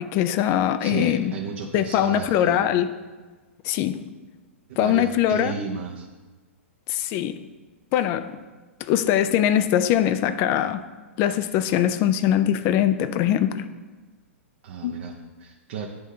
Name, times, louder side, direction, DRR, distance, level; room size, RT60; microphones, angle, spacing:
voice 1, 0.0-1.3 1.7-2.9 3.6-4.0 4.8-5.5 6.9-7.3 7.9-8.3 8.8-10.8 11.2-13.6 14.8-15.0, left 11 dB, 35° left, 12 dB, 0.4 m, -22 dB
voice 2, 0.8-2.6 4.7-6.1 14.6-15.9, right 6 dB, 50° right, 1 dB, 0.6 m, -34 dB
10.0 x 3.5 x 2.7 m, 1.3 s
figure-of-eight pair, 110°, 7 cm